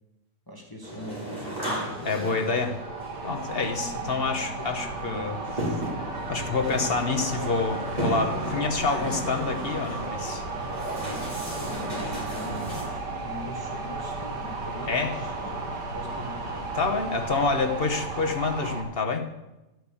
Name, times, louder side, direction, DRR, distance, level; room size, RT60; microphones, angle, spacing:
voice 1, 0.5-2.5 3.7-5.8 6.8-7.6 8.5-9.1 11.5-15.5 15.9-16.7, left 1 dB, 15° left, 0 dB, 1.7 m, -42 dB
sound 1, 0.8-12.8, right 1 dB, 25° right, 4.2 m, -36 dB
sound 2, 1.5-18.8, right 3 dB, 85° right, 2.3 m, -34 dB
voice 2, 2.0-2.7 3.2-5.8 6.3-10.4 14.9-15.1 16.7-19.3, left 4 dB, 40° left, 4 dB, 1.1 m, -27 dB
12.0 x 6.2 x 8.4 m, 0.99 s
omnidirectional pair, 1.8 m